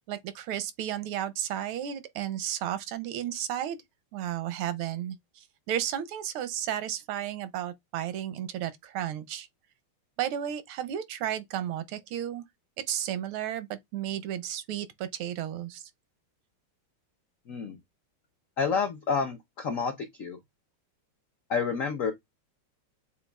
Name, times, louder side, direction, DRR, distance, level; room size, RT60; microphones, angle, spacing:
voice 1, 0.1-3.8 4.1-9.5 10.2-12.4 12.9-15.9, right 11 dB, 85° right, 1.5 m, -33 dB
voice 2, 18.6-19.9 20.2-20.4 21.5-22.1, left 5 dB, 80° left, 0.7 m, -29 dB
7.0 x 2.4 x 2.3 m
omnidirectional pair, 2.4 m